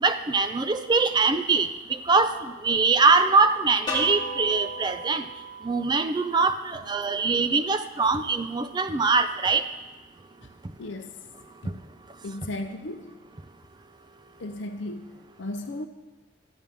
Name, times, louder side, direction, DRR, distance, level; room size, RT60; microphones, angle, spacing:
voice 1, 0.0-2.3 2.6-5.2 5.6-9.6, right 4 dB, 20° right, 9 dB, 0.4 m, -23 dB
sound 1, 3.9-6.8, equal, 25° left, 2.3 m, -36 dB
voice 2, 10.8-11.3 11.6-11.8 12.2-13.2 14.4-15.9, left 1 dB, 70° left, 7 dB, 0.6 m, -36 dB
13.5 x 9.0 x 3.5 m, 1.2 s
head